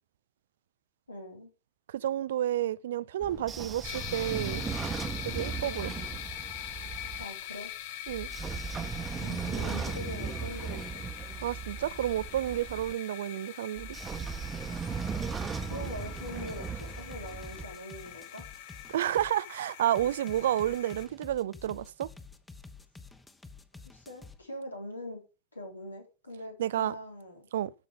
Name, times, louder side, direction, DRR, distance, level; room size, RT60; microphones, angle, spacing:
voice 1, 1.1-1.5 5.6-6.0 7.2-7.7 9.2-11.0 15.6-18.4 23.9-25.2 25.5-27.5, left 1 dB, 80° left, 3.8 m, -42 dB
voice 2, 1.9-4.6 5.2-5.9 8.1-8.3 11.4-14.0 18.9-22.1 26.6-26.9 27.5-27.7, right 12 dB, 60° right, 0.5 m, -30 dB
Train / Sliding door, 3.2-7.2 8.1-12.9 13.8-17.6, right 6 dB, 20° right, 1.2 m, -37 dB
sound 1, 3.8-21.1, left 11 dB, 50° left, 1.2 m, -43 dB
sound 2, 15.2-19.3 19.9-24.4, left 4 dB, 10° left, 1.2 m, -49 dB
13.5 x 5.4 x 5.1 m
figure-of-eight pair, 85°, 0 cm